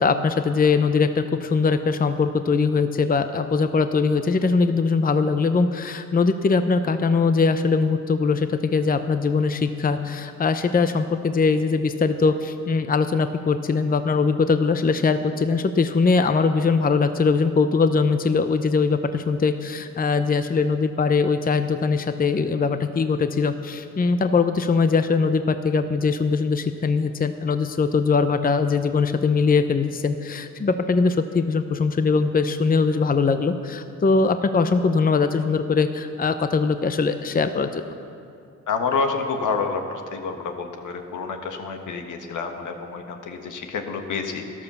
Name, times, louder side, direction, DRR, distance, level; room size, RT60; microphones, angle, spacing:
voice 1, 0.0-37.8, left 4 dB, 30° left, 9 dB, 0.7 m, -21 dB
voice 2, 38.7-44.6, left 4 dB, 80° left, 4 dB, 1.5 m, -28 dB
12.5 x 12.0 x 7.0 m, 2.5 s
cardioid pair, 75°, 30 cm